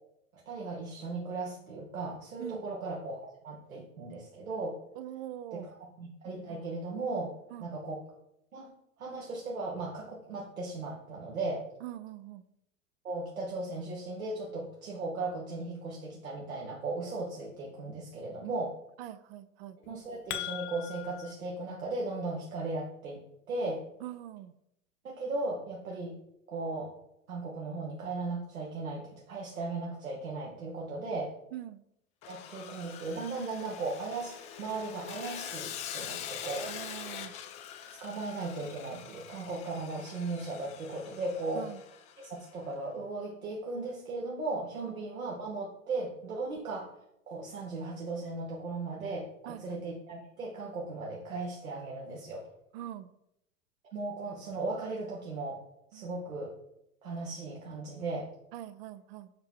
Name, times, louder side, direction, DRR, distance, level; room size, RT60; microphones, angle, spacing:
voice 1, 0.5-4.8 5.5-5.6 6.0-7.3 7.6-8.0 8.5-8.7 9.0-11.6 13.0-18.8 19.9-23.2 23.5-23.8 25.0-26.1 26.5-26.9 27.3-31.3 32.3-36.6 38.0-41.7 42.2-46.9 47.3-52.4 53.9-55.6 55.9-56.5 57.0-58.3, right 3 dB, 80° right, -2 dB, 1.3 m, -37 dB
voice 2, 5.0-5.7 7.5-7.7 11.8-12.4 19.0-19.8 24.0-24.5 31.5-31.8 36.6-37.3 41.5-41.8 49.5-49.8 52.7-53.1 55.9-56.2 58.5-59.3, right 12 dB, 45° right, 13 dB, 0.5 m, -43 dB
sound 1, 19.8-21.3, left 13 dB, 40° left, 0.9 m, -39 dB
Sawing, 32.2-42.5, left 9 dB, 20° left, 0.3 m, -44 dB
5.6 x 5.0 x 4.6 m, 0.80 s
figure-of-eight pair, 90°, 42 cm